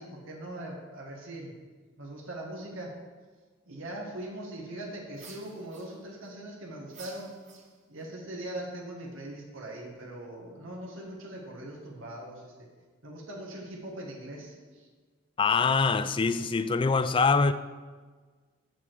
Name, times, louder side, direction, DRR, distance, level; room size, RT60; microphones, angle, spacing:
voice 1, 0.0-1.6 2.0-2.9 3.7-7.3 7.9-12.7 13.0-14.9, right 1 dB, 70° right, 1.8 m, -41 dB
sound 1, 5.1-6.3 6.9-8.1, right 5 dB, 35° right, 1.2 m, -51 dB
voice 2, 15.4-17.5, left 4 dB, 25° left, 0.3 m, -24 dB
7.1 x 6.9 x 6.4 m
head